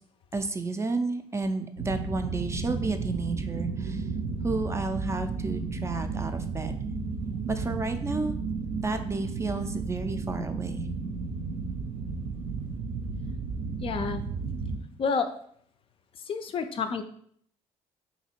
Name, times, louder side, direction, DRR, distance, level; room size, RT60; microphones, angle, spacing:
voice 1, 0.3-4.1 4.4-6.7 7.5-8.4 8.8-10.9, right 3 dB, 20° right, 7 dB, 0.4 m, -32 dB
sound 1, 1.8-14.8, right 4 dB, 75° right, 0.5 m, -33 dB
voice 2, 13.8-14.2 15.0-15.3 16.3-17.0, left 5 dB, 45° left, 8 dB, 0.4 m, -29 dB
2.9 x 2.8 x 4.3 m, 0.64 s
cardioid pair, 90°, 13 cm